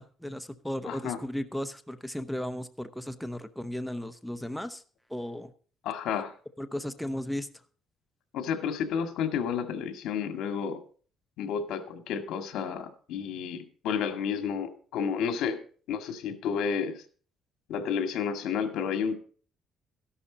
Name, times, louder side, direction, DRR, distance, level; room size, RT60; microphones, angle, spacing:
voice 1, 0.0-4.8 5.1-5.5 6.6-7.5, left 1 dB, ahead, 8 dB, 0.8 m, -35 dB
voice 2, 0.9-1.2 5.8-6.3 8.3-10.8 11.4-15.6 15.9-17.0 17.7-19.1, left 7 dB, 80° left, 7 dB, 2.0 m, -31 dB
13.5 x 11.5 x 4.0 m, 0.43 s
cardioid pair, 135°, 0 cm